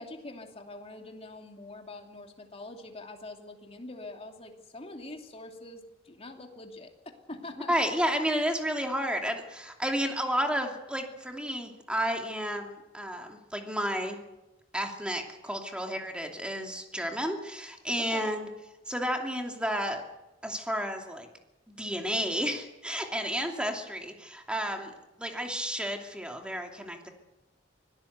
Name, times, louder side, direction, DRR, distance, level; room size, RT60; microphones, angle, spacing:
voice 1, 0.0-6.9 7.3-7.7 18.0-18.3, left 2 dB, 35° left, 3 dB, 2.8 m, -44 dB
voice 2, 7.7-14.2 14.7-18.5 18.9-20.0 20.4-21.3 21.7-24.9 25.2-27.1, equal, 5° right, 3 dB, 2.7 m, -31 dB
24.5 x 17.5 x 8.1 m, 1.0 s
head